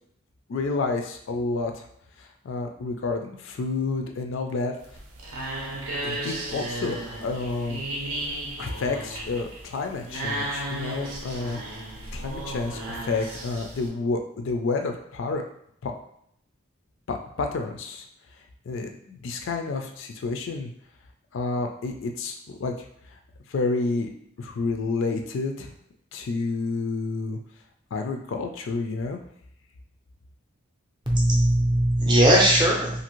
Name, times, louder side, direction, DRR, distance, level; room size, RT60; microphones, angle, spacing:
voice 1, 0.5-1.8 2.2-4.8 6.0-7.8 8.6-11.6 12.1-15.4 15.8-15.9 17.1-18.1 18.7-20.7 21.3-22.7 23.5-24.1 24.4-25.7 26.1-27.4 27.9-29.2, left 3 dB, 60° left, 4 dB, 0.3 m, -29 dB
sound 1, 4.8-13.9, right 1 dB, 80° right, 0.7 m, -34 dB
voice 2, 31.1-33.0, right 1 dB, 20° right, -2 dB, 0.5 m, -19 dB
2.7 x 2.5 x 3.0 m, 0.71 s
head